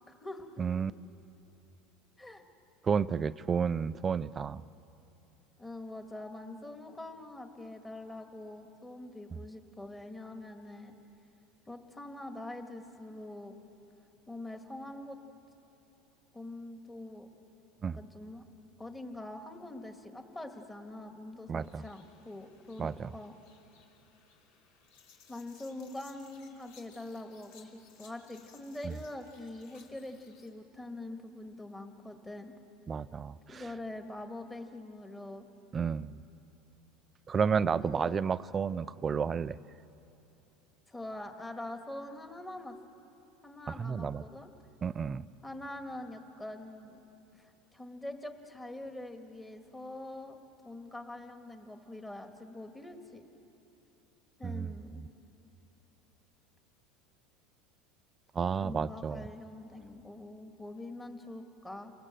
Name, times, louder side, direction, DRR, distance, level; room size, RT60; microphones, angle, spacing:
voice 1, 0.1-0.6 2.2-2.4 5.6-10.9 11.7-13.5 14.3-15.2 16.3-17.3 17.9-18.4 18.8-23.3 25.3-32.5 33.5-35.4 37.8-38.1 40.9-42.8 43.4-44.5 45.4-47.0 47.3-50.4 50.6-53.3 54.4-55.0 58.6-61.9, left 1 dB, 10° left, 5 dB, 1.8 m, -44 dB
voice 2, 0.6-0.9 2.8-4.6 17.8-18.0 21.5-21.8 22.8-23.1 28.8-28.9 32.9-33.6 35.7-36.2 37.3-39.6 43.8-44.2 44.8-45.3 54.4-54.7 58.3-59.3, right 6 dB, 25° right, 16 dB, 0.4 m, -31 dB
sound 1, 21.6-30.5, left 6 dB, 75° left, 3.0 m, -61 dB
28.0 x 20.0 x 7.7 m, 3.0 s
supercardioid pair, 135°, 0 cm